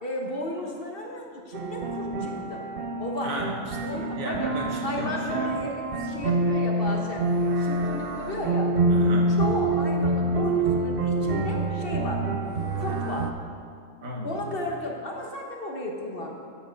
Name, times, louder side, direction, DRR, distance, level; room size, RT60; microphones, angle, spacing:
voice 1, 0.0-2.6 3.0-3.3 3.8-4.5 4.8-7.2 7.6-8.7 9.4-12.2 12.8-13.3 14.2-16.3, left 1 dB, 45° left, 0 dB, 1.2 m, -34 dB
sound 1, 1.5-13.3, right 2 dB, 55° right, 0.7 m, -26 dB
voice 2, 3.2-5.5 8.9-9.4 14.0-14.5, right 1 dB, 80° right, 0 dB, 1.8 m, -34 dB
12.5 x 6.0 x 5.2 m, 2.3 s
omnidirectional pair, 1.4 m